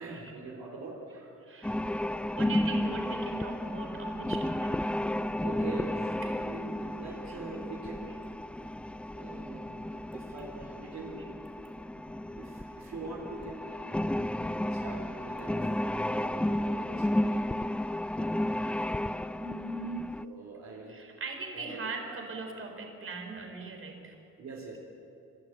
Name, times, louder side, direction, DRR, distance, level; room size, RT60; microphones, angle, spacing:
voice 1, 0.0-1.4 5.4-8.2 9.1-11.2 11.7-14.0 14.7-17.5 18.1-18.7 19.1-19.2 20.2-20.9 21.5-21.9 24.4-24.8, right 3 dB, 60° right, -1 dB, 3.7 m, -44 dB
voice 2, 1.4-1.8 2.3-5.0 6.2-6.4 7.3-7.4 17.5-17.8 19.3-20.3 20.9-24.2, right 3 dB, 45° right, 3 dB, 4.1 m, -40 dB
sound 1, 1.6-20.2, left 1 dB, 5° left, 0.4 m, -33 dB
24.5 x 12.5 x 9.1 m, 3.0 s
cardioid pair, 90°, 30 cm